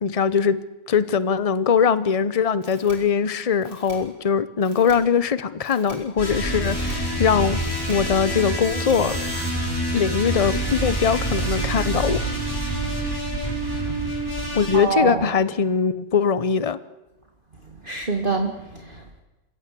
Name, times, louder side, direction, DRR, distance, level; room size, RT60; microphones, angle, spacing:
voice 1, 0.0-0.6 0.9-7.6 7.9-9.2 9.9-12.2 14.5-16.8, left 6 dB, 55° left, 15 dB, 0.3 m, -21 dB
sound 1, 2.6-2.9 3.6-3.9 4.6-4.9 5.6-5.9 6.6-6.9 7.6-7.9 8.6-9.5, right 3 dB, 85° right, 5.9 m, -41 dB
sound 2, 6.2-14.8, right 1 dB, 10° left, 6.1 m, -26 dB
voice 2, 9.6-10.0 14.5-15.3 17.8-19.2, right 4 dB, 30° right, 4 dB, 1.8 m, -27 dB
27.0 x 16.5 x 8.3 m, 1.1 s
omnidirectional pair, 1.9 m